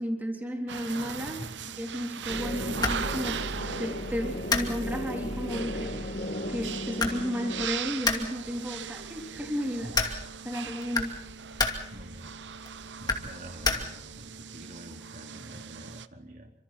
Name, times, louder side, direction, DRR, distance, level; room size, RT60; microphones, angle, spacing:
voice 1, 0.0-1.4 1.8-3.4 3.8-6.0 6.5-10.0 10.4-11.1, equal, 10° right, 1 dB, 3.6 m, -33 dB
sound 1, 0.7-16.1, right 7 dB, 80° right, 0.9 m, -39 dB
sound 2, 2.3-7.7, left 1 dB, 65° left, 2.2 m, -35 dB
sound 3, 2.4-14.3, left 3 dB, 20° left, 2.5 m, -34 dB
voice 2, 11.9-12.5 13.0-16.5, right 1 dB, 50° right, 2 dB, 3.0 m, -46 dB
28.5 x 26.0 x 4.3 m, 0.75 s
head